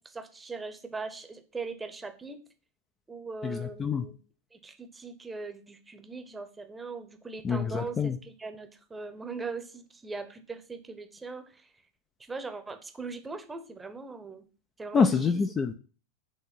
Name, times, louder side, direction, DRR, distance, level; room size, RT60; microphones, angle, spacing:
voice 1, 0.0-2.4 3.1-4.1 4.5-11.7 12.3-14.4 14.8-15.3, right 4 dB, 10° right, 8 dB, 1.0 m, -40 dB
voice 2, 3.4-4.0 7.4-8.2 14.9-15.8, left 5 dB, 20° left, 6 dB, 0.6 m, -26 dB
8.3 x 3.6 x 5.6 m, 0.38 s
figure-of-eight pair, 90°, 0 cm